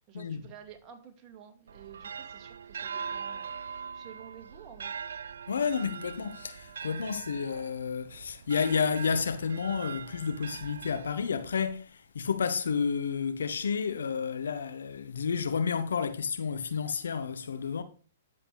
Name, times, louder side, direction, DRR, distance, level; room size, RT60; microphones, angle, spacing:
voice 1, 0.0-5.0, right 9 dB, 30° right, 2.3 m, -51 dB
sound 1, 1.7-11.6, right 6 dB, 70° right, 0.3 m, -42 dB
voice 2, 5.5-17.8, left 6 dB, 75° left, 1.0 m, -31 dB
10.5 x 7.6 x 3.3 m
figure-of-eight pair, 115°, 0 cm